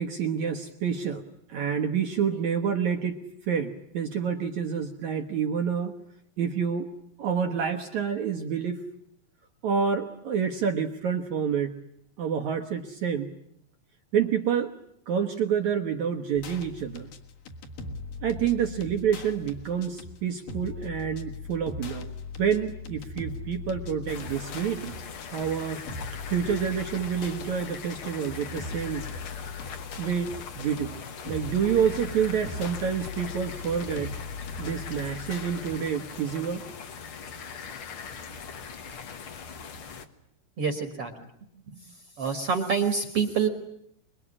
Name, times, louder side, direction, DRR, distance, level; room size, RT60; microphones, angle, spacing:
voice 1, 0.0-3.2 3.5-5.9 6.4-6.9 7.2-8.8 9.6-11.8 12.2-13.3 14.1-14.7 15.1-17.1 18.2-22.1 22.4-24.9 25.3-25.8 26.3-29.1 30.0-30.3 30.6-31.0 31.3-34.2 34.6-36.6, right 7 dB, 65° right, 4 dB, 1.9 m, -28 dB
sound 1, 16.3-35.8, left 4 dB, 60° left, 3.1 m, -40 dB
sound 2, 24.1-40.1, left 6 dB, 75° left, 1.2 m, -41 dB
voice 2, 40.6-41.1 41.7-41.8 42.2-43.5, right 6 dB, 50° right, 7 dB, 2.0 m, -26 dB
25.5 x 22.0 x 9.8 m, 0.72 s
omnidirectional pair, 4.8 m